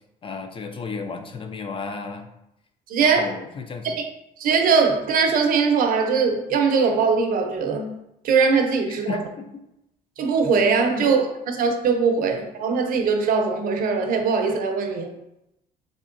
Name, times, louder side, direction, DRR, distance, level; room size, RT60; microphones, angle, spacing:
voice 1, 0.2-2.3 3.0-4.0 8.9-9.5 10.9-11.2, left 4 dB, 30° left, 6 dB, 0.3 m, -33 dB
voice 2, 2.9-3.3 3.8-3.9 4.4-7.9 8.2-9.2 10.2-15.2, right 5 dB, 60° right, 5 dB, 0.5 m, -21 dB
3.6 x 3.1 x 2.5 m, 0.84 s
cardioid pair, 110°, 17 cm